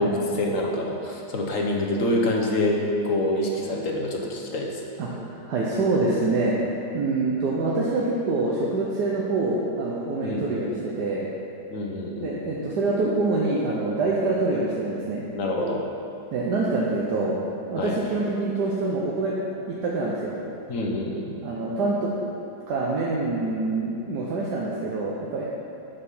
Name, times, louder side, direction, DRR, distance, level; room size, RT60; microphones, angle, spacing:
voice 1, 0.0-4.9 10.2-10.5 11.7-12.4 15.3-15.8 17.8-18.0 20.7-21.3, left 1 dB, 55° left, 0 dB, 1.2 m, -26 dB
voice 2, 5.0-6.6 6.9-11.3 12.2-15.2 16.3-17.3 17.7-19.4 19.7-20.3 21.4-22.1 22.4-25.4, right 3 dB, 75° right, -5 dB, 1.5 m, -25 dB
7.4 x 6.7 x 5.4 m, 2.7 s
omnidirectional pair, 1.8 m